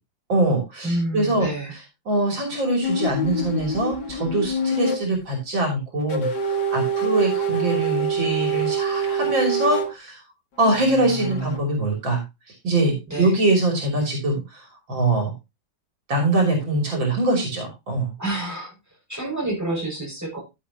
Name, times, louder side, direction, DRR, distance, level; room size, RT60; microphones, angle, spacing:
voice 1, 0.3-10.2 10.6-12.2 12.6-15.3 16.1-18.1, right 2 dB, 70° right, 1 dB, 3.8 m, -23 dB
voice 2, 0.8-1.7 13.1-13.3 18.2-18.7 19.1-20.4, right 2 dB, 10° right, -2 dB, 6.3 m, -28 dB
sound 1, 2.8-5.0 6.1-9.9 10.6-11.6, right 3 dB, 60° left, 2.5 m, -25 dB
13.5 x 7.8 x 2.9 m, 0.24 s
omnidirectional pair, 2.1 m